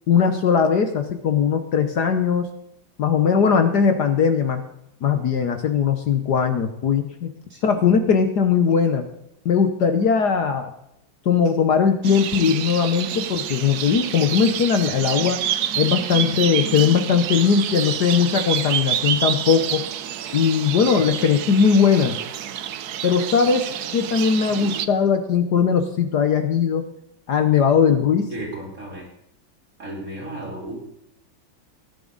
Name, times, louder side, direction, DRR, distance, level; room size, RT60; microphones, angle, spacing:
voice 1, 0.1-2.5 3.0-4.6 5.0-7.3 7.6-9.1 9.4-10.7 11.2-15.4 15.8-19.9 20.3-22.2 23.0-26.8 27.3-28.3, left 6 dB, 60° left, 7 dB, 1.5 m, -19 dB
sound 1, 12.0-24.9, right 10 dB, 60° right, 1.1 m, -28 dB
voice 2, 28.3-29.1 29.8-30.7, right 1 dB, 40° right, -2 dB, 4.9 m, -34 dB
18.0 x 10.5 x 4.0 m, 0.80 s
omnidirectional pair, 2.2 m